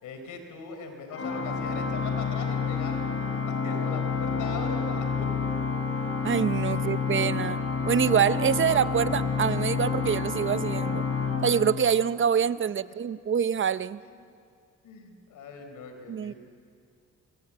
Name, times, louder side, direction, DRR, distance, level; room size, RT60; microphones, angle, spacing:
voice 1, 0.0-5.3 6.7-6.9 14.0-14.2 14.8-16.4, left 4 dB, 80° left, 6 dB, 4.4 m, -40 dB
Organ, 1.1-12.3, left 5 dB, 50° left, 4.4 m, -29 dB
voice 2, 6.2-7.6 7.9-11.1 11.4-14.0 16.1-16.3, right 8 dB, 40° right, 15 dB, 0.7 m, -25 dB
27.0 x 23.5 x 8.7 m, 2.2 s
cardioid pair, 90°, 30 cm